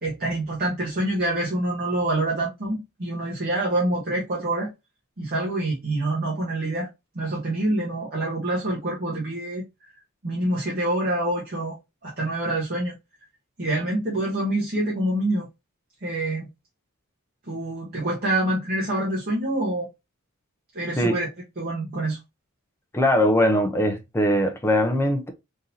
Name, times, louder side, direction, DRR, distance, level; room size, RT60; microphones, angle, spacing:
voice 1, 0.0-4.7 5.2-6.9 7.1-9.9 10.2-11.8 12.0-12.9 13.6-15.5 16.0-16.5 17.5-19.9 20.7-21.3 21.6-22.2, right 1 dB, 45° right, 1.0 m, -26 dB
voice 2, 22.9-25.3, left 1 dB, 10° left, 0.5 m, -21 dB
3.7 x 2.7 x 2.7 m
head